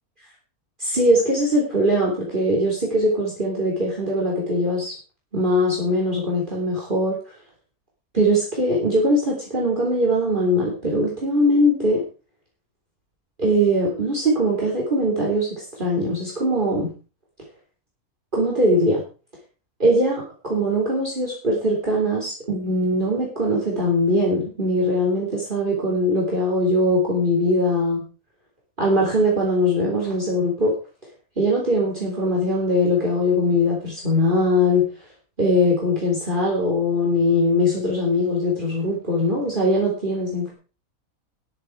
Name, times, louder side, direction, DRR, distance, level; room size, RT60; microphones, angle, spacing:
voice 1, 0.8-4.9 5.3-7.2 8.1-12.0 13.4-16.9 18.3-19.0 19.8-28.0 28.8-30.7 31.4-34.9 35.4-40.5, left 1 dB, 35° right, -3 dB, 3.6 m, -21 dB
13.0 x 11.0 x 4.7 m, 0.36 s
omnidirectional pair, 1.5 m